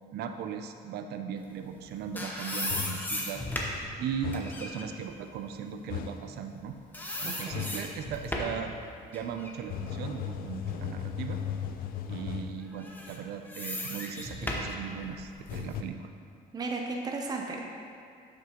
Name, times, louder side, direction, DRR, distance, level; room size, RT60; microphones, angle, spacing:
voice 1, 0.1-3.4 4.0-6.8 7.2-8.8 9.1-11.4 12.1-16.1, right 7 dB, 75° right, 7 dB, 0.5 m, -38 dB
sound 1, 1.7-6.6 6.9-8.7 9.1-11.1 11.6-11.7 12.7-15.7, left 1 dB, 10° left, 0.9 m, -37 dB
sound 2, 2.7-3.1 4.2-4.7 5.9-6.3 7.5-7.9 9.7-12.6 15.5-15.8, left 9 dB, 60° left, 0.4 m, -36 dB
voice 2, 7.4-7.7 16.5-17.6, right 3 dB, 25° right, 1 dB, 0.6 m, -34 dB
7.8 x 6.0 x 3.0 m, 2.5 s
cardioid pair, 110°, 17 cm